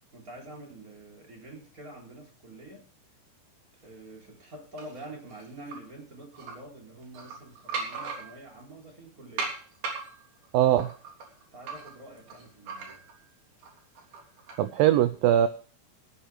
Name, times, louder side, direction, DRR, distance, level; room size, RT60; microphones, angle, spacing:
voice 1, 0.1-2.9 3.8-9.5 11.5-13.1, right 1 dB, 20° right, 0 dB, 3.7 m, -46 dB
sound 1, 4.8-5.8 6.3-6.5 7.0-8.6 9.4-13.3 13.6-14.7, right 4 dB, 60° right, 4.9 m, -38 dB
voice 2, 10.5-10.9 14.6-15.5, right 12 dB, 85° right, 12 dB, 2.0 m, -21 dB
17.0 x 8.4 x 5.0 m, 0.42 s
omnidirectional pair, 5.0 m